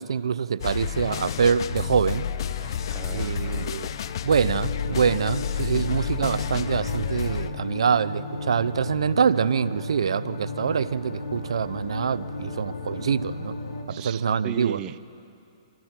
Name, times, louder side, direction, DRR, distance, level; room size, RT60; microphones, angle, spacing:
voice 1, 0.0-2.3 3.1-3.9 4.2-13.5 13.9-14.8, right 6 dB, 80° right, 17 dB, 0.6 m, -25 dB
sound 1, 0.6-7.5, left 8 dB, 60° left, 0.8 m, -30 dB
voice 2, 2.9-3.7 13.9-15.1, right 12 dB, 25° right, 13 dB, 0.6 m, -37 dB
sound 2, 4.5-13.8, left 2 dB, 90° left, 2.6 m, -34 dB
26.0 x 25.5 x 4.5 m, 2.6 s
hypercardioid pair, 140°, 3 cm